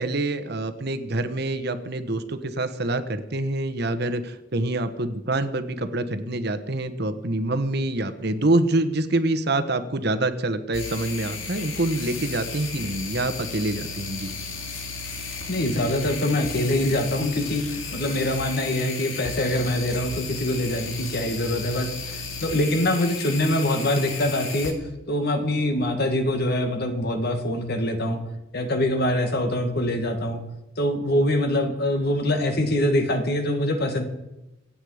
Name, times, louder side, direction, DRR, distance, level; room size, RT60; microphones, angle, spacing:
voice 1, 0.0-14.3, right 2 dB, 55° right, 10 dB, 1.2 m, -26 dB
sound 1, 10.7-24.7, left 4 dB, 85° left, 2.6 m, -34 dB
voice 2, 15.5-24.8 25.1-28.2 28.5-30.4 30.8-34.0, left 1 dB, 55° left, 6 dB, 2.1 m, -24 dB
26.0 x 8.8 x 5.0 m, 0.95 s
head